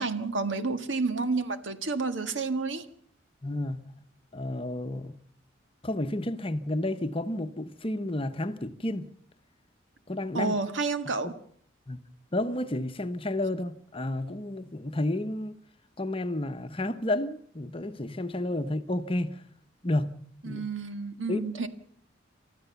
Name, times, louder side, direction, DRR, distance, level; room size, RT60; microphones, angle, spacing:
voice 1, 0.0-2.9 10.3-11.3 20.4-21.7, right 3 dB, 75° right, 1.7 m, -30 dB
voice 2, 3.4-3.8 4.3-5.1 5.8-9.1 10.1-10.6 11.9-12.0 12.3-15.6 16.0-19.4 19.8-20.2 20.4-20.6 21.3-21.4, left 1 dB, 30° left, 0.9 m, -31 dB
29.5 x 13.0 x 7.0 m
head